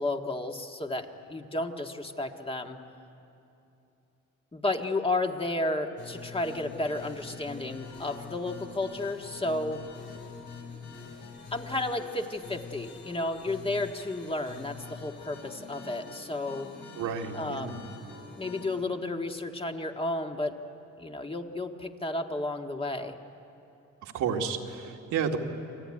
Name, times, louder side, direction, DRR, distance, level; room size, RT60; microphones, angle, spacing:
voice 1, 0.0-2.8 4.5-9.8 11.5-16.7 17.3-17.9 18.4-20.6 21.0-23.2, left 2 dB, 20° left, 4 dB, 1.8 m, -32 dB
sound 1, 6.0-18.8, left 5 dB, 85° left, 6.0 m, -45 dB
voice 2, 17.0-17.8 24.0-25.4, right 7 dB, 90° right, 1 dB, 2.2 m, -31 dB
27.5 x 19.5 x 9.9 m, 2.8 s
cardioid pair, 90°, 30 cm